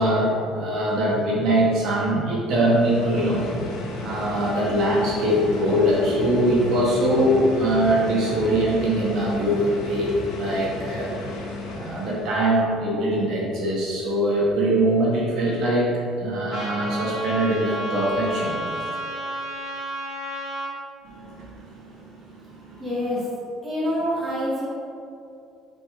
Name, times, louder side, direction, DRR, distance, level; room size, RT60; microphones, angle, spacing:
voice 1, 0.0-3.4 3.9-11.1 11.7-15.9 16.2-18.6 21.1-22.8, right 1 dB, 55° right, -5 dB, 1.5 m, -22 dB
sound 1, 2.5-12.5, left 1 dB, 80° left, 1.0 m, -34 dB
Trumpet, 16.5-20.7, right 1 dB, 40° left, 1.2 m, -31 dB
voice 2, 22.8-23.3 23.6-24.7, equal, 15° right, -8 dB, 1.4 m, -26 dB
6.4 x 4.1 x 3.7 m, 2.6 s
cardioid pair, 160°, 0 cm